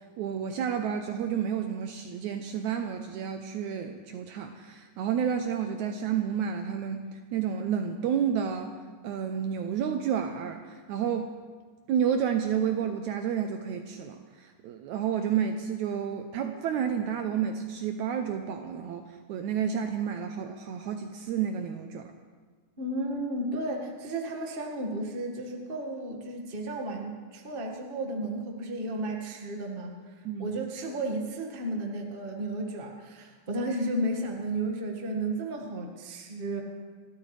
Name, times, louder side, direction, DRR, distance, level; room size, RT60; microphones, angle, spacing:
voice 1, 0.2-7.1 7.3-8.7 9.0-11.3 11.9-22.1 30.3-30.6, right 8 dB, 75° right, 6 dB, 1.9 m, -30 dB
voice 2, 22.8-36.6, right 1 dB, 30° right, 1 dB, 1.1 m, -33 dB
28.5 x 13.0 x 3.3 m, 1.5 s
omnidirectional pair, 3.9 m